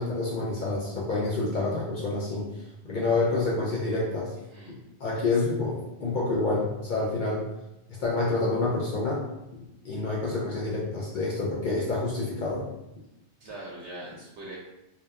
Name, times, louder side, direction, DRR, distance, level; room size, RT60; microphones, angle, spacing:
voice 1, 0.0-2.5 2.9-4.3 5.0-7.5 8.0-9.2 9.8-12.6, left 3 dB, 55° left, -6 dB, 0.6 m, -28 dB
voice 2, 13.4-14.6, right 1 dB, 85° right, -4 dB, 0.9 m, -41 dB
2.8 x 2.1 x 2.3 m, 0.91 s
omnidirectional pair, 1.1 m